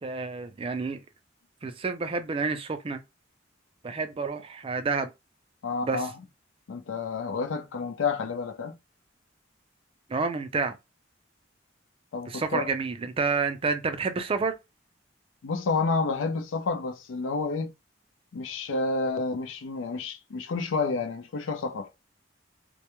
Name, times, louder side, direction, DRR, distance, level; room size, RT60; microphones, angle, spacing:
voice 1, 0.0-1.0 1.6-3.0 3.8-5.1 5.8-6.1 10.1-10.8 12.3-14.5, right 4 dB, 30° right, 0.4 m, -29 dB
voice 2, 5.6-6.1 6.7-8.8 12.1-12.7 15.4-17.7 18.3-21.9, left 4 dB, 85° left, 0.4 m, -29 dB
2.2 x 2.2 x 2.9 m
head